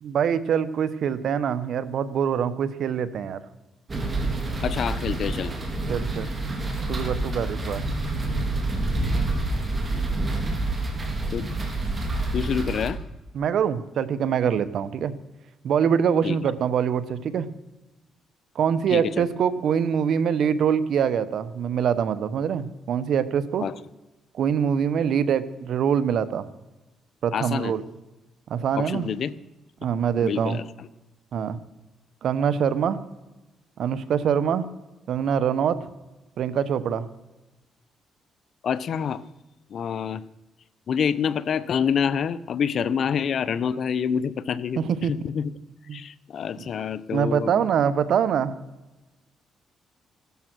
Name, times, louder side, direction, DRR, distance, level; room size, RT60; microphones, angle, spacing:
voice 1, 0.0-3.4 5.9-6.3 6.9-7.8 13.3-15.1 15.6-17.5 18.5-23.6 24.3-26.5 27.2-27.8 28.5-29.1 29.8-30.6 31.3-31.6 32.2-33.0 33.8-34.7 35.1-35.8 36.4-37.1 44.8-45.1 45.9-46.0 46.6-46.7 47.1-48.6, right 8 dB, 65° right, 14 dB, 1.1 m, -24 dB
sound 1, 3.9-12.9, right 2 dB, 30° right, 3.6 m, -27 dB
voice 2, 4.6-5.5 9.9-10.1 11.3-11.5 12.3-13.0 16.2-16.4 18.9-19.3 23.6-23.8 27.3-27.7 28.8-29.3 30.2-30.9 38.6-39.2 39.7-40.2 40.9-45.5 45.9-47.7, left 7 dB, 60° left, 17 dB, 0.8 m, -27 dB
16.5 x 12.5 x 6.3 m, 1.1 s
cardioid pair, 90°, 0 cm